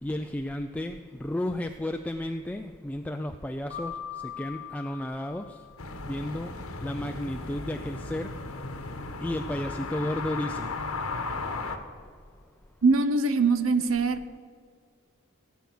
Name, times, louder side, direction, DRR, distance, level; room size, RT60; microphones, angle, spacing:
voice 1, 0.0-3.9 4.2-5.6 6.0-6.5 6.8-8.3 9.2-10.7, left 1 dB, 5° left, 5 dB, 0.3 m, -33 dB
Keyboard (musical), 3.7-6.2, left 8 dB, 25° right, 3.3 m, -41 dB
sound 1, 5.8-11.8, left 3 dB, 85° left, 1.2 m, -35 dB
voice 2, 12.8-14.4, right 3 dB, 70° right, 11 dB, 0.8 m, -23 dB
17.5 x 8.3 x 6.1 m, 2.1 s
head